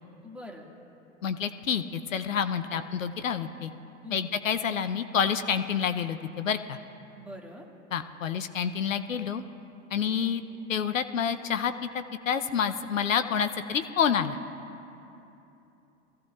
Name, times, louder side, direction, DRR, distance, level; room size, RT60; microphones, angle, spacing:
voice 1, 0.2-0.7 2.7-2.8 4.0-4.3 7.2-7.7 9.9-10.3, equal, 5° right, -1 dB, 1.9 m, -44 dB
voice 2, 1.2-3.7 4.1-6.8 7.9-9.4 9.9-10.4 10.7-14.4, left 7 dB, 80° left, 10 dB, 0.7 m, -28 dB
23.5 x 15.5 x 2.4 m, 2.9 s
figure-of-eight pair, 90°, 38 cm